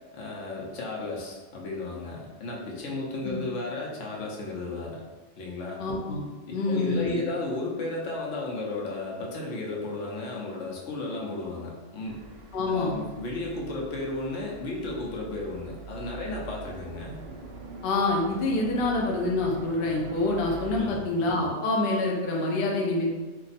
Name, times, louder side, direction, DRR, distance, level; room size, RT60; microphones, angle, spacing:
voice 1, 0.1-5.0 5.4-5.8 6.5-12.2 12.7-17.2 20.7-21.0, left 2 dB, 80° left, -2 dB, 1.0 m, -34 dB
voice 2, 5.8-6.2 6.5-7.3 12.5-13.0 17.8-23.1, left 2 dB, 60° left, -1 dB, 0.7 m, -26 dB
sound 1, 12.0-20.8, right 4 dB, 65° right, 0.7 m, -43 dB
2.5 x 2.3 x 4.0 m, 1.2 s
omnidirectional pair, 1.2 m